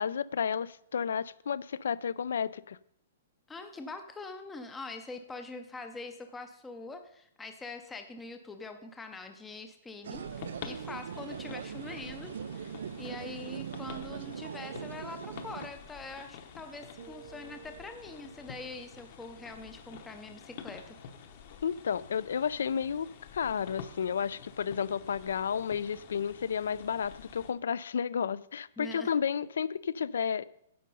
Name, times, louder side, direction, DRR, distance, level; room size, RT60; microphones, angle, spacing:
voice 1, 0.0-2.8 21.6-30.4, left 7 dB, 80° left, 0.4 m, -32 dB
voice 2, 3.5-10.3 10.6-12.7 13.0-21.0 28.8-29.1, left 3 dB, 5° left, 0.4 m, -44 dB
sound 1, 10.0-15.7, right 8 dB, 70° right, 0.3 m, -41 dB
sound 2, 10.1-27.5, left 7 dB, 35° left, 0.9 m, -49 dB
sound 3, 17.0-20.7, right 10 dB, 45° right, 0.8 m, -56 dB
10.0 x 7.5 x 5.3 m
hypercardioid pair, 180°, 0 cm